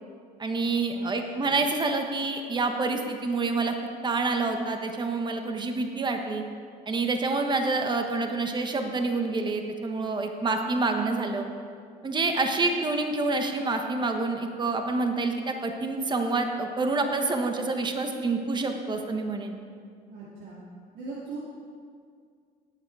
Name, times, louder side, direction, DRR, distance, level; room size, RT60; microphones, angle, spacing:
voice 1, 0.4-3.7 4.0-6.4 6.9-11.5 12.0-19.6, right 3 dB, 25° right, 4 dB, 1.3 m, -27 dB
voice 2, 0.9-1.5 20.1-20.6 20.9-21.4, right 3 dB, 80° right, -7 dB, 2.6 m, -40 dB
17.5 x 8.9 x 4.8 m, 2.1 s
cardioid pair, 110°, 17 cm